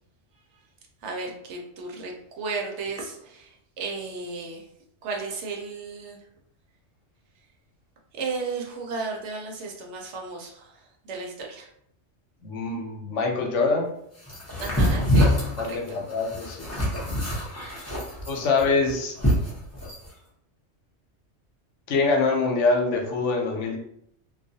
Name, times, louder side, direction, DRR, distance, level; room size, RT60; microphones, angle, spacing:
voice 1, 1.0-4.7 5.0-6.2 8.1-11.7 14.6-16.0, right 4 dB, 75° right, 1 dB, 0.9 m, -34 dB
voice 2, 12.4-13.9 15.6-16.7 18.3-19.1 21.9-23.8, left 3 dB, 90° left, 1 dB, 1.0 m, -24 dB
sound 1, 14.3-20.1, equal, 15° left, 0.6 m, -25 dB
2.3 x 2.2 x 2.6 m, 0.71 s
omnidirectional pair, 1.2 m